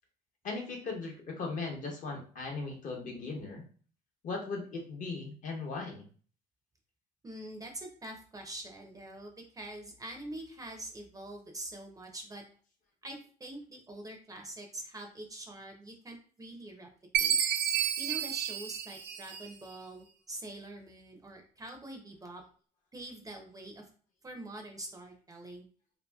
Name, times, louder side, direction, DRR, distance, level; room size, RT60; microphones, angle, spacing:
voice 1, 0.4-3.6 4.2-6.0, left 3 dB, 50° left, 0 dB, 0.9 m, -38 dB
voice 2, 7.2-12.4 13.0-16.9 17.2-17.4 18.0-22.4 22.9-23.9 24.2-25.6, right 1 dB, 20° right, 3 dB, 0.5 m, -45 dB
Chime, 17.1-19.7, right 9 dB, 75° right, 0.5 m, -31 dB
2.7 x 2.6 x 2.2 m, 0.42 s
cardioid pair, 110°, 17 cm